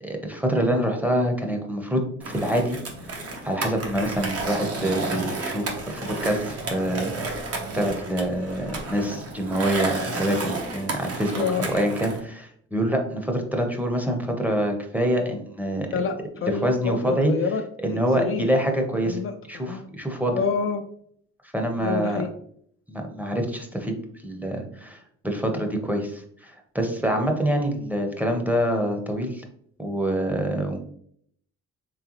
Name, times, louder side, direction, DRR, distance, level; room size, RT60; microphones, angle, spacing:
voice 1, 0.0-2.8 3.4-15.9 16.6-17.3 17.8-19.2 19.5-20.3 21.5-22.2 22.9-24.0 24.2-29.4 29.8-30.8, right 1 dB, 5° right, 3 dB, 0.8 m, -26 dB
Skateboard, 2.2-12.2, right 2 dB, 50° right, 1.0 m, -31 dB
voice 2, 11.4-11.7 15.9-17.6 17.9-18.5 19.0-19.9 20.3-20.8 21.8-22.3, left 5 dB, 45° left, 6 dB, 0.4 m, -28 dB
3.8 x 3.3 x 3.0 m, 0.65 s
cardioid pair, 90°, 30 cm